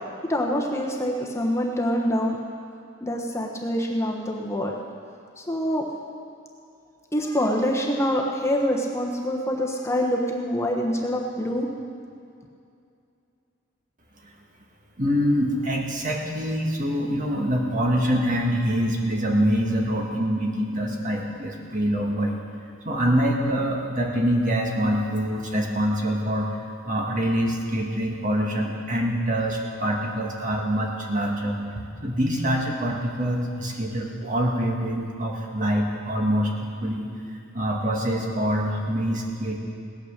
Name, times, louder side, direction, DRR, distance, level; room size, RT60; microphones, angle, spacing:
voice 1, 0.3-2.4 3.0-4.8 5.4-5.8 7.1-11.7, equal, 15° left, -1 dB, 1.1 m, -25 dB
voice 2, 15.0-22.4 22.9-26.5 26.8-37.1 37.5-39.6, equal, 40° right, 0 dB, 1.9 m, -25 dB
17.5 x 9.3 x 6.7 m, 2.5 s
head